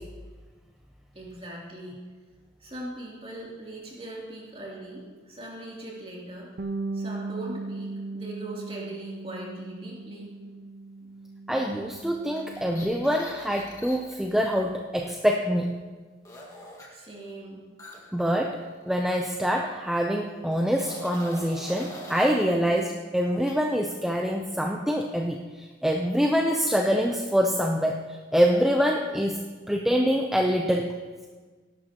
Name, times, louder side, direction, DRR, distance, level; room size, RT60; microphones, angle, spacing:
voice 1, 1.1-2.0 2.6-6.5 6.9-10.3 16.9-17.6, right 1 dB, 30° right, -4 dB, 2.9 m, -40 dB
Bass guitar, 6.6-12.8, right 3 dB, 50° right, 0.5 m, -37 dB
voice 2, 11.5-15.8 18.1-18.6 18.9-30.9, equal, ahead, 1 dB, 0.5 m, -25 dB
sound 1, 12.3-14.3 16.2-16.9 17.8-19.2 19.4-19.7 20.5-22.4 23.3-23.5, left 1 dB, 15° left, 1.8 m, -44 dB
18.5 x 11.5 x 2.9 m, 1.4 s
head